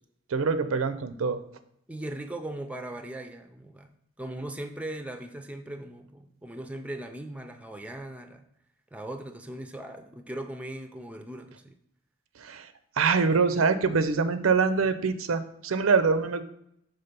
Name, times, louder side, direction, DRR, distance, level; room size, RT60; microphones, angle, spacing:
voice 1, 0.3-1.4 12.4-16.4, right 5 dB, 90° right, 11 dB, 0.5 m, -25 dB
voice 2, 1.9-3.9 4.2-8.5 8.9-11.8, right 1 dB, 5° right, 7 dB, 0.4 m, -39 dB
5.7 x 3.6 x 5.2 m, 0.75 s
head